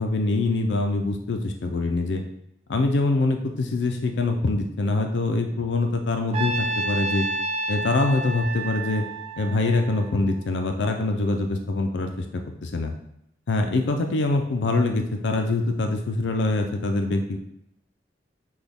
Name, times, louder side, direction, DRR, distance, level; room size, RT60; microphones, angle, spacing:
voice 1, 0.0-2.2 2.7-7.3 7.7-9.0 9.4-12.9 13.5-17.4, left 2 dB, 85° left, 4 dB, 0.5 m, -24 dB
Trumpet, 6.3-10.6, right 2 dB, 35° right, 0.3 m, -30 dB
6.0 x 2.3 x 3.5 m, 0.80 s
head